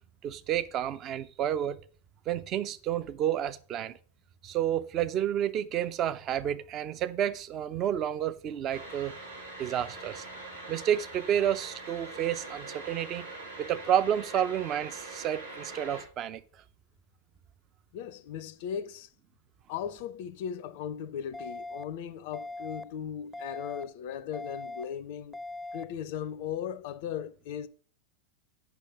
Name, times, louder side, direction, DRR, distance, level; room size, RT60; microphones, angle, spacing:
voice 1, 0.2-1.8 2.3-4.0 4.4-9.2 9.6-10.2 10.7-13.3 13.6-16.4, right 10 dB, 35° right, 0.6 m, -30 dB
sound 1, 8.7-16.0, right 2 dB, 75° right, 3.6 m, -43 dB
voice 2, 17.9-19.1 19.7-25.4 25.7-27.7, left 9 dB, 50° left, 0.5 m, -37 dB
sound 2, 21.3-21.8 22.3-22.8 23.3-23.8 24.3-24.8 25.3-25.8, left 2 dB, 5° left, 0.6 m, -40 dB
8.2 x 5.9 x 5.9 m
figure-of-eight pair, 90°, 0 cm